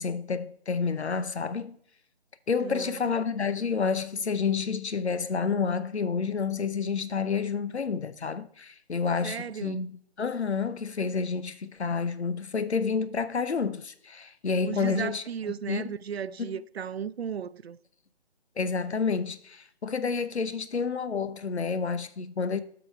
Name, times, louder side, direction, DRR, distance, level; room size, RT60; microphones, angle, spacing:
voice 1, 0.0-1.8 2.5-9.9 10.2-15.2 15.7-15.9 16.4-16.6 18.6-22.6, left 5 dB, 85° left, 0.8 m, -29 dB
voice 2, 2.6-3.0 9.2-9.8 14.6-17.8, right 7 dB, 70° right, 0.5 m, -35 dB
7.7 x 6.1 x 3.5 m
figure-of-eight pair, 160°, 32 cm